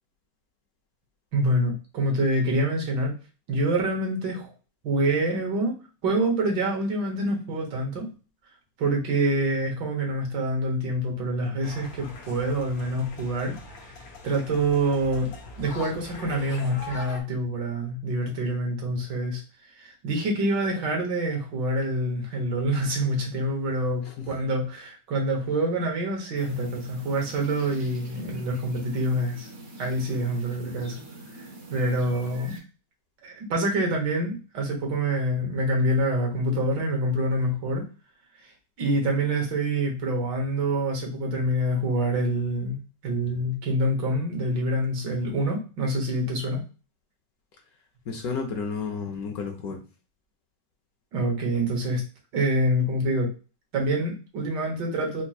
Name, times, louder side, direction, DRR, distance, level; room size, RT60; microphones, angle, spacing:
voice 1, 1.3-3.1 3.5-4.5 4.8-5.8 6.0-8.1 8.8-13.6 13.8-15.3 15.6-19.4 19.8-29.5 29.8-31.0 31.4-32.6 33.2-37.8 38.4-38.5 38.8-42.8 43.0-46.6 51.1-52.0 52.3-53.3 53.7-55.2, right 1 dB, 75° right, 0 dB, 1.8 m, -26 dB
sound 1, 11.6-17.2, left 2 dB, 80° left, 1.5 m, -41 dB
voice 2, 24.0-24.4 48.1-49.8, left 5 dB, 65° left, 3 dB, 1.1 m, -32 dB
sound 2, 26.3-32.6, right 2 dB, 45° right, 1.2 m, -45 dB
4.3 x 2.9 x 2.3 m, 0.34 s
omnidirectional pair, 2.0 m